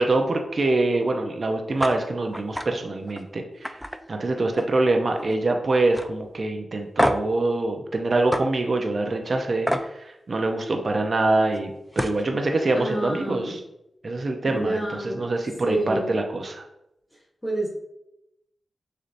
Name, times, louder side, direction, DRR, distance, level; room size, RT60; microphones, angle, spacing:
voice 1, 0.0-3.8 4.1-13.6 14.0-16.6, right 2 dB, 55° right, 3 dB, 0.6 m, -25 dB
sound 1, 1.8-2.0 2.3-2.7 3.1-3.2 3.6-4.8 5.1-5.5 5.9-6.1 7.0-7.3 8.3-8.4 9.7-9.9 11.5-11.6 11.9-12.2, equal, ahead, 0.4 m, -26 dB
voice 2, 12.7-13.6 14.5-15.3 15.6-16.2 17.4-17.7, right 1 dB, 15° left, -8 dB, 1.3 m, -28 dB
6.4 x 2.8 x 2.5 m, 0.84 s
cardioid pair, 60°, 0 cm